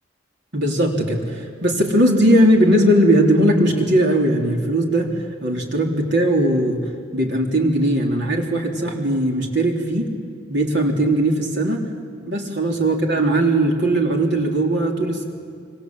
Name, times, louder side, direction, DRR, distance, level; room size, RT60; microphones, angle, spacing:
voice 1, 0.5-5.2 5.4-10.1 10.5-11.9 12.3-15.2, right 1 dB, 65° right, 1 dB, 3.6 m, -19 dB
26.5 x 24.5 x 7.9 m, 2.2 s
head